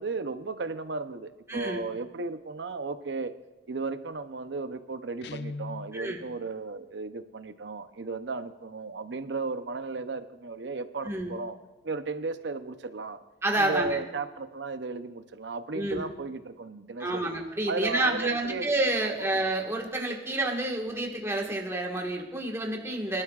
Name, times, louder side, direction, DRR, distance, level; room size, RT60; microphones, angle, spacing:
voice 1, 0.0-3.3 3.7-11.6 11.8-13.2 13.6-17.3 17.7-18.7 19.0-19.3, right 3 dB, 85° right, 10 dB, 0.7 m, -35 dB
voice 2, 1.5-1.8 5.9-6.2 11.0-11.4 13.4-14.0 15.7-16.1 17.0-23.2, right 2 dB, 15° right, 0 dB, 1.6 m, -29 dB
Guitar, 5.2-6.0, left 3 dB, 70° left, 0.5 m, -38 dB
23.5 x 12.0 x 2.4 m, 1.1 s
head